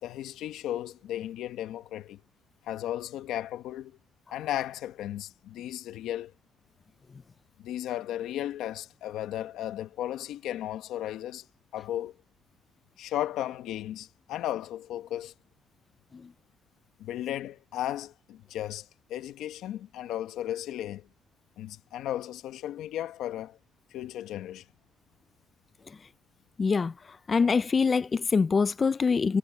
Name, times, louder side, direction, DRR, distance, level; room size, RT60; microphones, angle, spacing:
voice 1, 0.0-2.2 2.6-4.0 4.3-6.3 7.6-11.5 11.7-12.1 13.0-15.3 17.0-21.1 21.6-23.6 23.9-24.6, left 12 dB, 85° left, 1.2 m, -35 dB
voice 2, 26.6-26.9 27.3-29.4, left 5 dB, 35° left, 0.5 m, -24 dB
cardioid pair, 90°, 0 cm